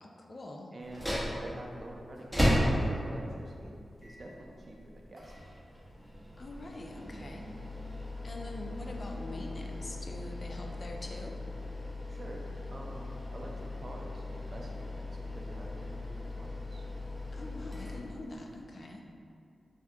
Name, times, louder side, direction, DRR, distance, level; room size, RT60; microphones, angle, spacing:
voice 1, 0.0-0.7 6.4-7.5 8.2-11.4 17.3-19.0, left 1 dB, 50° left, 1 dB, 0.3 m, -44 dB
voice 2, 0.7-5.5 12.1-16.8, right 1 dB, 45° right, -1 dB, 0.4 m, -47 dB
sound 1, 0.8-18.6, equal, ahead, 0.8 m, -36 dB
2.7 x 2.2 x 3.4 m, 2.4 s
cardioid pair, 65°, 0 cm